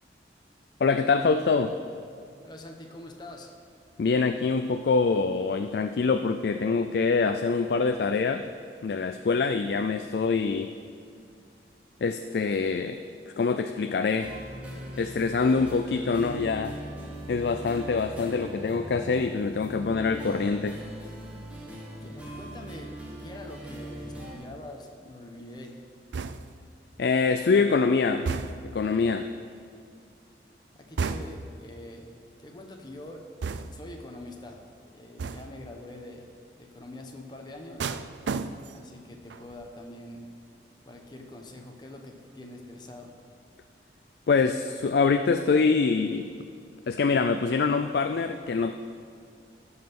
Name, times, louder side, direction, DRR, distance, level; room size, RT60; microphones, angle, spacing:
voice 1, 0.8-1.8 4.0-8.4 8.8-10.7 12.0-13.0 13.3-14.3 15.0-16.8 17.3-20.8 27.0-28.3 28.7-29.3 44.3-46.3 46.9-48.7, left 4 dB, 60° left, 8 dB, 0.4 m, -25 dB
voice 2, 2.4-3.5 22.0-25.8 30.7-32.1 32.4-33.2 33.7-37.9 38.7-40.3 40.8-43.2, left 1 dB, 25° left, 2 dB, 1.0 m, -44 dB
sound 1, 14.2-24.3, right 1 dB, 5° right, 1.5 m, -40 dB
sound 2, 26.1-26.7 28.3-28.8 31.0-31.6 33.4-34.0 35.2-35.7 37.8-38.9 39.3-39.7, right 4 dB, 80° right, 0.4 m, -33 dB
14.0 x 5.6 x 6.0 m, 2.4 s
head